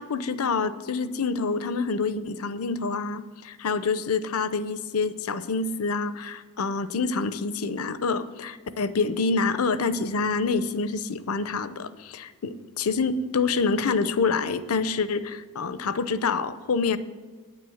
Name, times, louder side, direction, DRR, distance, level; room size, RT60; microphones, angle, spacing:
voice 1, 0.0-17.0, left 4 dB, 70° left, 14 dB, 0.6 m, -27 dB
9.7 x 7.7 x 7.1 m, 1.5 s
head